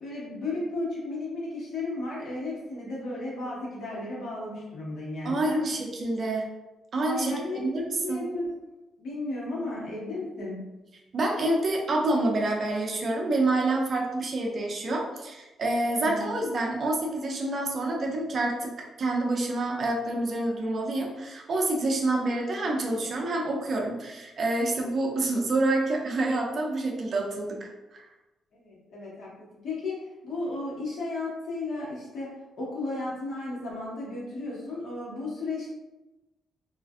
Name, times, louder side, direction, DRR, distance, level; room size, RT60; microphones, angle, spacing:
voice 1, 0.0-5.6 7.0-8.5 9.0-10.7 15.9-16.3 28.5-35.7, left 2 dB, 60° left, -6 dB, 1.2 m, -34 dB
voice 2, 5.2-6.5 6.9-8.2 11.1-18.7 19.0-28.0, right 2 dB, 40° right, 0 dB, 0.5 m, -27 dB
3.2 x 2.4 x 2.4 m, 1.0 s
cardioid pair, 160°, 0 cm